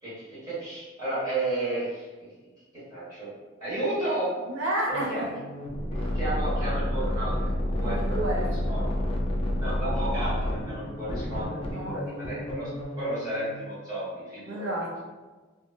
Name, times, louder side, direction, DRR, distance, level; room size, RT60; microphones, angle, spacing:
voice 1, 0.0-2.1 2.9-3.3 3.6-4.3 4.9-5.2 6.1-8.3 8.7-8.9 9.6-12.7 13.0-14.7, right 1 dB, 20° right, -13 dB, 1.4 m, -32 dB
voice 2, 4.5-5.1 6.0-6.2 7.7-8.5 11.6-12.0 14.5-15.0, right 1 dB, 80° right, -4 dB, 0.6 m, -31 dB
sound 1, 4.9-13.5, left 1 dB, 30° left, 0.3 m, -30 dB
2.8 x 2.2 x 2.6 m, 1.3 s
head